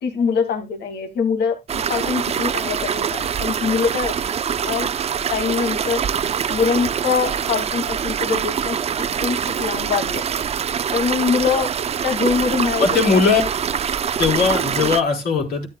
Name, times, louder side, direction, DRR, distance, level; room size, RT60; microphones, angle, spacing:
voice 1, 0.0-4.4 4.6-4.9 5.3-6.0 6.5-10.2 10.9-11.7 12.0-13.2, left 5 dB, 90° left, 2.4 m, -23 dB
sound 1, 1.7-15.0, right 8 dB, 40° right, 0.5 m, -24 dB
voice 2, 12.8-13.4 14.2-15.7, left 5 dB, 70° left, 4.0 m, -18 dB
13.0 x 9.8 x 2.3 m
cardioid pair, 140°, 17 cm